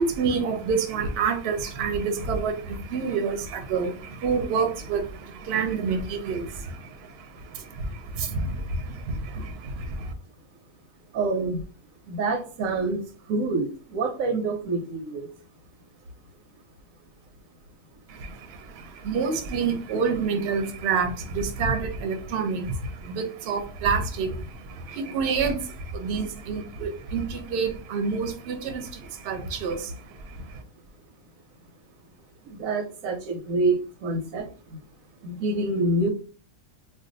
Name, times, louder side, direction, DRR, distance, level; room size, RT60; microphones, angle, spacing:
voice 1, 0.0-10.1 18.1-30.6, right 5 dB, 60° right, 5 dB, 0.7 m, -28 dB
voice 2, 11.1-11.7 12.1-13.0 13.3-15.3 32.5-34.5 35.2-36.1, right 2 dB, 85° right, 6 dB, 1.1 m, -26 dB
2.5 x 2.2 x 3.8 m, 0.38 s
omnidirectional pair, 1.4 m